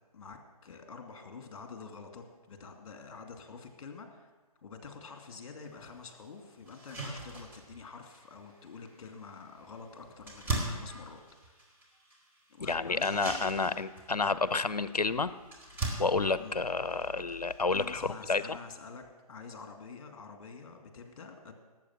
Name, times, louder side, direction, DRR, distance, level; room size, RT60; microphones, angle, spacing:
voice 1, 0.1-4.3 4.6-11.8 12.5-13.0 13.5-13.7 16.4-16.6 17.7-19.0 19.3-21.5, left 5 dB, 50° left, 4 dB, 2.5 m, -47 dB
sound 1, 5.6-5.7 6.2-6.3 6.7-18.3, right 2 dB, 10° right, 2.8 m, -42 dB
voice 2, 12.6-15.3 16.0-18.6, left 4 dB, 85° left, 15 dB, 0.7 m, -30 dB
18.5 x 8.1 x 5.9 m, 1.3 s
figure-of-eight pair, 135°, 20 cm